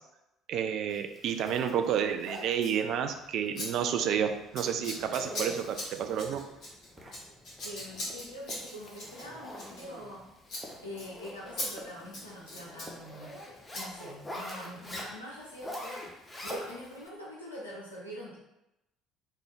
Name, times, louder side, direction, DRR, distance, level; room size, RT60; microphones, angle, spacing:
voice 1, 0.5-6.4, right 8 dB, 50° right, 7 dB, 0.3 m, -30 dB
Zipper (clothing), 0.9-17.1, left 1 dB, 15° left, 0.7 m, -46 dB
Scissors, 2.5-2.8 3.5-3.7 3.9-4.2 4.5-10.2 10.5-10.7 11.0-11.1 11.6-11.7 12.0-12.9 13.7-13.9, left 1 dB, 45° left, 1.4 m, -40 dB
sound 1, 4.0-4.3 5.0-5.3 6.0-6.2 7.0-7.2 8.5-8.7 9.5-9.8 10.6-10.9 11.8-12.0 12.9-13.1 14.5-14.9 15.7-16.1, equal, 15° right, 0.8 m, -50 dB
voice 2, 7.6-10.2 10.8-13.4 13.7-18.4, equal, 85° left, -7 dB, 0.5 m, -44 dB
3.3 x 2.3 x 3.8 m, 0.91 s
figure-of-eight pair, 55°, 0 cm